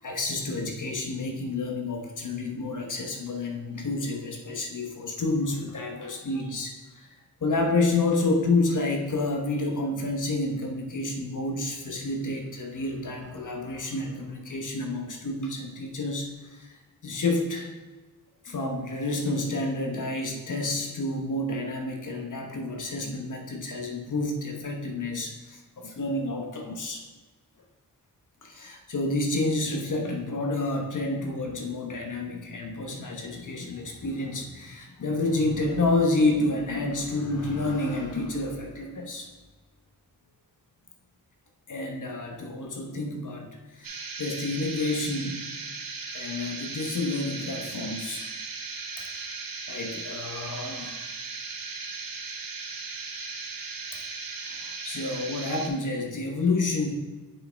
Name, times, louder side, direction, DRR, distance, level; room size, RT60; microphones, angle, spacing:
voice 1, 0.0-7.1 7.4-17.7 18.4-27.0 28.4-39.3 41.7-45.4 46.1-48.3 49.1-49.2 49.7-51.0 54.5-56.9, left 2 dB, 60° left, 2 dB, 1.0 m, -29 dB
sound 1, 43.8-55.7, right 4 dB, 75° right, 0.8 m, -37 dB
7.4 x 4.7 x 3.4 m, 1.2 s
wide cardioid pair, 110°, 35 cm